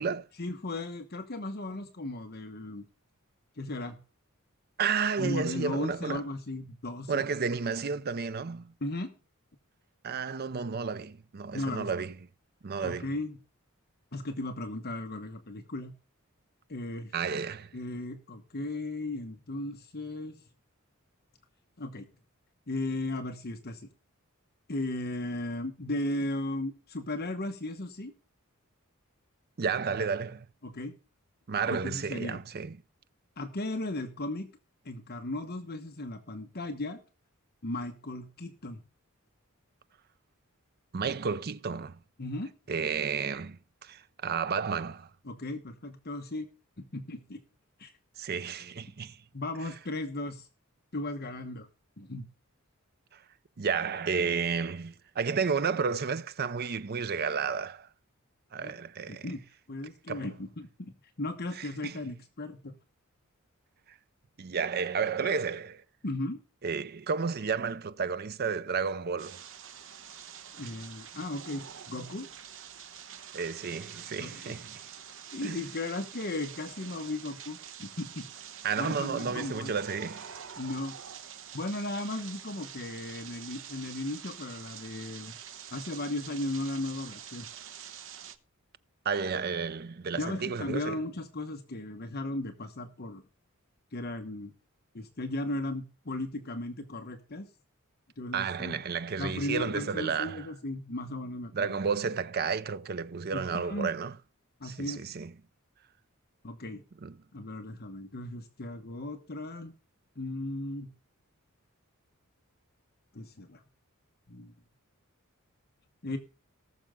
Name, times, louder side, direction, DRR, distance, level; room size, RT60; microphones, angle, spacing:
voice 1, 0.4-2.8 3.6-4.0 5.2-7.3 8.8-9.1 11.5-11.9 12.8-13.4 14.1-15.9 16.7-17.1 17.7-20.4 21.8-22.1 22.7-23.9 24.7-28.1 30.6-30.9 31.7-32.4 33.4-34.5 34.8-37.0 37.6-38.8 42.2-42.5 45.2-46.5 46.8-47.4 47.8-47.9 49.3-50.5 50.9-51.7 52.0-52.3 58.6-58.7 59.1-60.9 61.2-62.8 66.0-66.4 70.6-72.3 74.2-74.6 75.3-78.3 78.8-79.7 80.6-80.9 81.5-85.3 85.7-87.5 90.1-93.2 93.9-94.5 94.9-97.5 98.2-98.8 99.2-101.8 103.3-103.9 104.6-105.0 106.4-106.8 107.3-109.7 110.2-110.9 113.1-113.6 114.3-114.5 116.0-116.2, left 2 dB, 45° left, 1.1 m, -36 dB
voice 2, 4.8-6.2 7.1-8.7 10.0-12.1 12.6-13.1 17.1-17.7 29.6-30.5 31.5-32.8 40.9-42.0 42.7-45.1 48.2-49.2 53.1-53.2 53.6-57.9 58.5-59.3 60.1-60.3 61.6-62.0 64.4-65.8 66.6-69.4 73.3-74.8 75.4-75.6 78.6-80.3 89.0-91.0 98.3-100.5 101.5-104.2 104.6-105.3 107.0-107.1, right 5 dB, 45° right, 0.5 m, -32 dB
sound 1, 69.2-88.4, right 8 dB, 60° right, 1.0 m, -46 dB
19.0 x 6.5 x 3.6 m
head